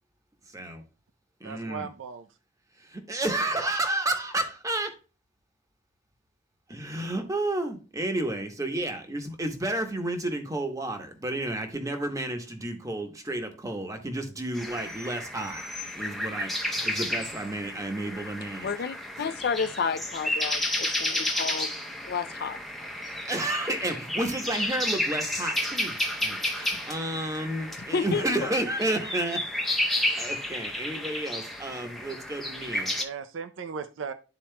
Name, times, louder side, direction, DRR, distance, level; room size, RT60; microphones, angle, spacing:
voice 1, 0.5-0.8 1.4-1.9 2.8-4.9 6.7-15.6 15.9-18.7 23.3-29.5 30.2-32.9, right 1 dB, 15° right, 0.9 m, -31 dB
voice 2, 1.4-2.3 32.9-34.1, right 6 dB, 85° right, 0.5 m, -37 dB
sound 1, 14.5-33.0, left 1 dB, ahead, 0.6 m, -32 dB
voice 3, 18.6-21.7 22.1-22.6 27.8-28.4, left 5 dB, 55° left, 0.4 m, -31 dB
12.0 x 4.2 x 2.2 m
head